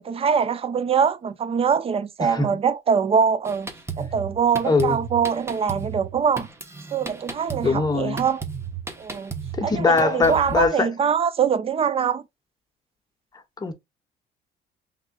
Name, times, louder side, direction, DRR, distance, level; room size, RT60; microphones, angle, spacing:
voice 1, 0.0-3.7 4.0-6.5 6.9-8.4 9.0-9.3 9.6-12.2, right 6 dB, 35° right, 0.6 m, -23 dB
voice 2, 2.2-2.5 4.6-5.0 7.6-8.2 9.6-10.9 13.6-13.7, left 4 dB, 25° left, 1.2 m, -21 dB
Drum kit, 3.4-10.7, right 5 dB, 15° right, 1.1 m, -35 dB
5.4 x 3.7 x 2.4 m
cardioid pair, 110°, 17 cm